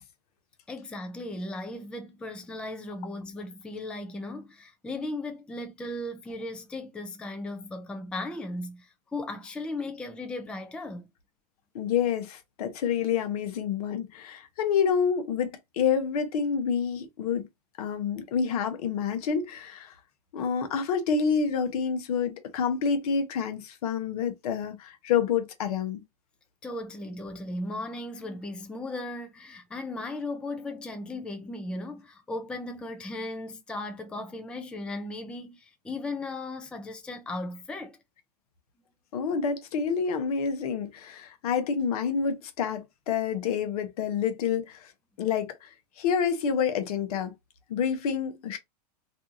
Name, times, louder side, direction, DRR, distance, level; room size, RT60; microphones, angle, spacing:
voice 1, 0.7-11.1 26.6-38.0, left 2 dB, 5° left, 0.4 m, -36 dB
voice 2, 11.7-17.5 17.8-19.9 20.3-26.0 39.1-44.9 45.2-47.3 47.7-48.6, left 6 dB, 65° left, 0.8 m, -28 dB
2.7 x 2.3 x 2.7 m
hypercardioid pair, 105°, 21 cm